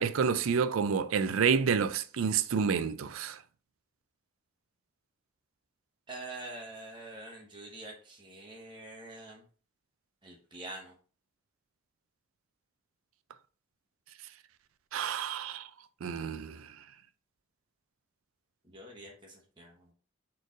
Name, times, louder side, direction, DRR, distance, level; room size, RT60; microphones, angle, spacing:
voice 1, 0.0-3.4 14.9-15.7 16.0-16.7, right 6 dB, 75° right, 0.4 m, -29 dB
voice 2, 6.1-9.4 10.2-10.9 18.6-19.9, right 2 dB, 25° right, 1.0 m, -45 dB
4.3 x 3.2 x 3.7 m
head